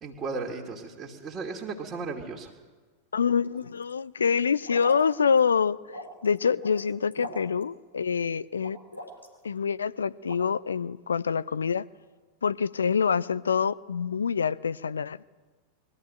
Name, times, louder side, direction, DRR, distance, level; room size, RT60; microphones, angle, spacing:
voice 1, 0.0-2.5, right 4 dB, 25° right, -1 dB, 2.6 m, -35 dB
voice 2, 3.1-8.8 9.4-11.8 12.4-15.2, left 6 dB, 70° left, 16 dB, 0.6 m, -26 dB
sound 1, 3.3-3.9 4.6-5.0 5.4-5.5 5.9-6.8 7.1-7.6 8.6-9.4 10.2-10.4, equal, 90° left, 3.3 m, -40 dB
22.0 x 14.0 x 9.2 m, 1.3 s
figure-of-eight pair, 90°, 0 cm